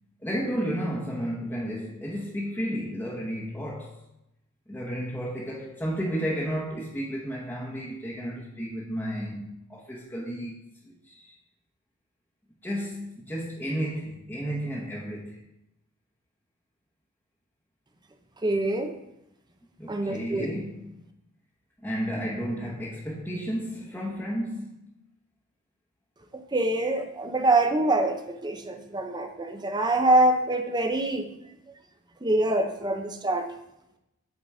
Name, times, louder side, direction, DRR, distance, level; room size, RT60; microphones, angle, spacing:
voice 1, 0.2-4.0 4.7-10.6 10.9-11.3 12.6-15.4 19.8-21.0 21.8-24.8, equal, 10° left, -5 dB, 1.0 m, -32 dB
voice 2, 18.4-18.9 19.9-20.5 26.5-31.2 32.2-33.5, right 2 dB, 20° right, 5 dB, 0.6 m, -25 dB
8.6 x 4.0 x 4.9 m, 0.86 s
head